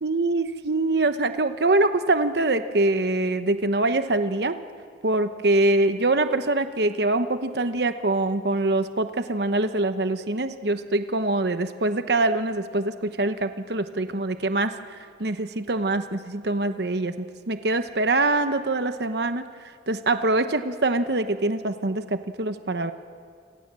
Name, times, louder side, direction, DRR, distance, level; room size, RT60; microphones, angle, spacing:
voice 1, 0.0-4.6 5.0-14.7 15.2-19.4 19.9-22.9, right 2 dB, 60° right, 9 dB, 1.0 m, -24 dB
28.0 x 26.5 x 7.6 m, 2.2 s
head